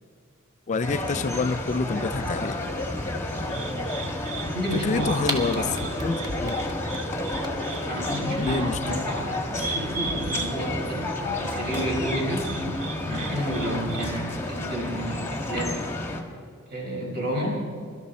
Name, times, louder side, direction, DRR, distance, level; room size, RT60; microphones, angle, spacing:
voice 1, 0.7-2.6 4.7-5.6 6.0-6.6 8.3-8.8, left 4 dB, 35° left, 11 dB, 0.4 m, -27 dB
sound 1, 0.8-16.2, left 1 dB, 10° left, 1.4 m, -31 dB
sound 2, 1.0-14.1, right 3 dB, 85° right, 1.4 m, -37 dB
voice 2, 3.4-3.9 4.3-5.9 7.8-12.5 13.1-15.9 16.7-17.7, equal, 45° right, -3 dB, 5.3 m, -31 dB
sound 3, 5.3-7.8, equal, 20° right, 1.8 m, -33 dB
23.5 x 12.5 x 4.2 m, 2.2 s
head